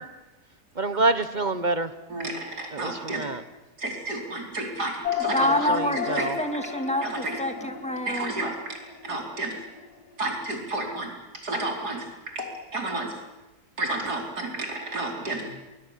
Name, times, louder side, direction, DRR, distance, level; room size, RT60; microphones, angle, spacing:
voice 1, 0.8-1.9 2.7-3.4 5.5-6.4, right 2 dB, 35° right, 11 dB, 1.0 m, -27 dB
voice 2, 2.1-3.3 3.8-5.7 6.1-6.3 7.0-7.4 8.1-8.8 9.0-9.6 10.2-12.0 12.3-13.1 13.8-15.5, right 2 dB, 80° right, 1 dB, 5.0 m, -31 dB
sound 1, 5.0-9.8, left 8 dB, 80° left, 2.3 m, -33 dB
voice 3, 5.2-8.3, left 1 dB, 5° left, 6 dB, 2.1 m, -27 dB
23.5 x 21.0 x 8.3 m, 1.1 s
omnidirectional pair, 1.7 m